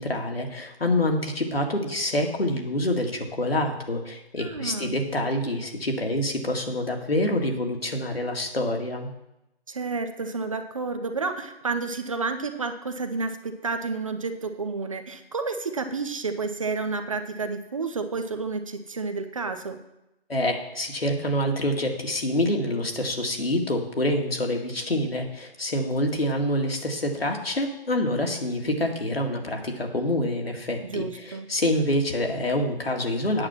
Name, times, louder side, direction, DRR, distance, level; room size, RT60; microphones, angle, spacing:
voice 1, 0.0-9.1 20.3-33.5, left 1 dB, 70° left, 2 dB, 2.0 m, -26 dB
voice 2, 4.4-5.0 9.7-19.8 30.9-31.5, right 4 dB, 35° right, 8 dB, 0.7 m, -30 dB
8.8 x 7.6 x 5.9 m, 0.89 s
figure-of-eight pair, 145°, 31 cm